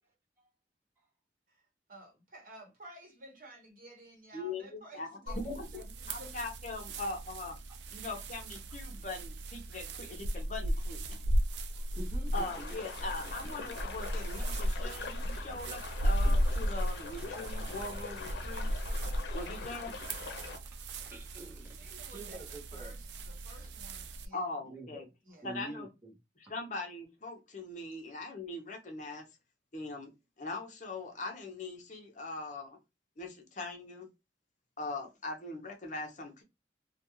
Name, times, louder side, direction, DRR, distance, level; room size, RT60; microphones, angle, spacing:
voice 1, 1.5-5.4 5.7-6.3 21.8-22.4 22.7-24.5 25.2-25.6, right 1 dB, 50° right, 1.1 m, -53 dB
voice 2, 4.3-7.6 7.9-11.2 12.3-18.7 19.3-19.9 24.3-25.1 25.4-25.9 26.4-29.2 29.7-30.1 30.4-32.8 33.2-34.1 34.8-36.4, left 2 dB, 45° left, 0.7 m, -41 dB
sound 1, 5.3-24.3, equal, 80° right, 0.4 m, -36 dB
voice 3, 11.7-12.8 19.4-19.5 20.4-23.0 23.6-23.7 24.7-25.1 25.4-26.1, right 2 dB, 15° right, 0.7 m, -48 dB
sound 2, 12.3-20.6, left 4 dB, 90° left, 0.5 m, -44 dB
2.4 x 2.2 x 2.9 m
head